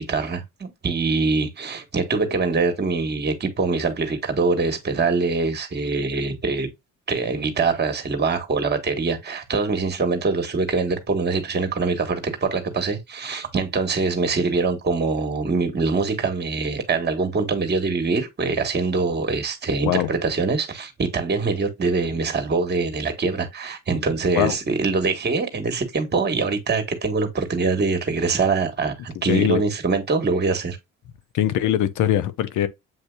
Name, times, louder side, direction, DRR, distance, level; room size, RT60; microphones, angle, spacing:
voice 1, 0.0-6.7 7.1-30.8, right 4 dB, 30° right, 1.4 m, -24 dB
voice 2, 29.2-29.6 31.3-32.7, left 11 dB, 70° left, 0.7 m, -21 dB
8.1 x 2.7 x 2.3 m
supercardioid pair, 85°, 32 cm